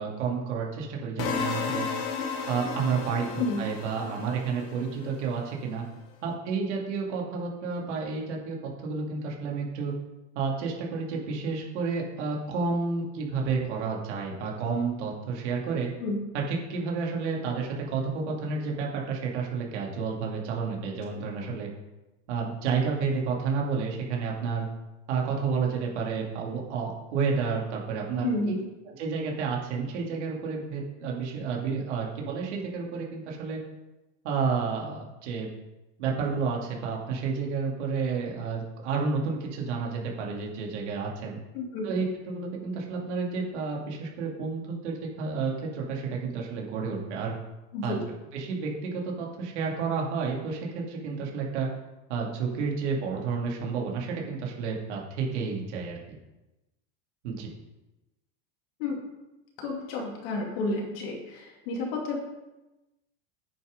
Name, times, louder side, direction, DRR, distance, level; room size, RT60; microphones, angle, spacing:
voice 1, 0.0-1.9 2.5-5.8 6.2-8.6 8.8-9.9 10.3-15.9 16.3-21.7 22.3-24.7 25.1-28.6 28.9-33.6 34.2-35.5 36.0-41.4 41.8-47.4 47.8-47.9 48.3-51.7 52.1-56.2 57.2-57.5, right 5 dB, 75° right, -1 dB, 2.6 m, -30 dB
sound 1, 1.2-5.3, left 6 dB, 35° left, 1.2 m, -33 dB
voice 2, 3.4-3.7 16.0-16.2 28.2-28.6 41.5-41.9 47.7-48.0 58.8-58.9 59.6-62.2, left 2 dB, 55° left, 0 dB, 2.6 m, -31 dB
9.1 x 5.8 x 5.2 m, 1.0 s
supercardioid pair, 160°, 35 cm